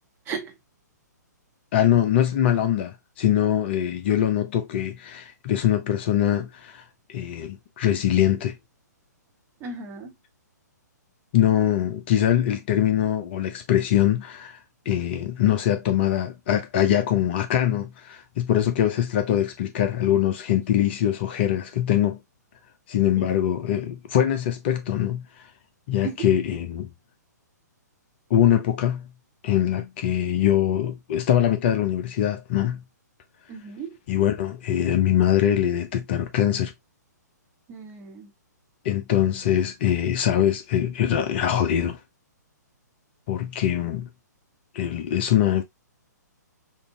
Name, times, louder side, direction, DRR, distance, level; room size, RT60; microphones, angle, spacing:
voice 1, 0.2-0.6 9.6-10.1 23.2-23.3 26.0-26.3 33.5-34.0 37.7-38.3, right 5 dB, 20° right, 1.2 m, -35 dB
voice 2, 1.7-6.8 7.1-8.5 11.3-14.6 14.9-22.2 22.9-25.2 25.9-26.9 28.3-29.1 29.4-32.8 34.1-36.7 38.8-42.0 43.3-44.1 44.7-45.6, left 11 dB, 35° left, 0.6 m, -23 dB
5.2 x 2.5 x 2.3 m
figure-of-eight pair, 120°, 10 cm